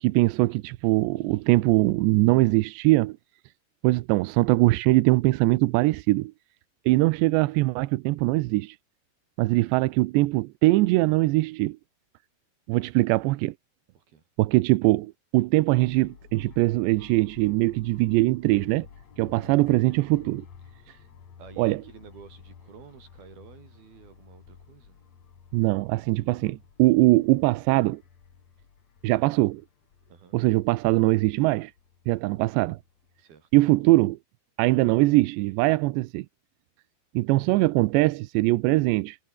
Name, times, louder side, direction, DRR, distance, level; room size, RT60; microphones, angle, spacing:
voice 1, 0.0-3.2 3.8-6.3 6.9-8.8 9.4-11.8 12.7-13.5 14.4-18.9 19.2-20.5 21.6-21.8 25.5-28.0 29.0-29.6 30.3-31.7 32.1-32.8 33.5-34.2 34.6-36.3 37.1-39.2, right 20 dB, 90° right, 2.9 m, -22 dB
voice 2, 9.4-9.8 13.9-14.2 19.4-19.7 21.4-25.1 30.1-30.4 33.2-33.5, right 7 dB, 60° right, 5.7 m, -50 dB
sound 1, 15.7-33.2, left 7 dB, 40° left, 3.4 m, -52 dB
omnidirectional pair, 5.1 m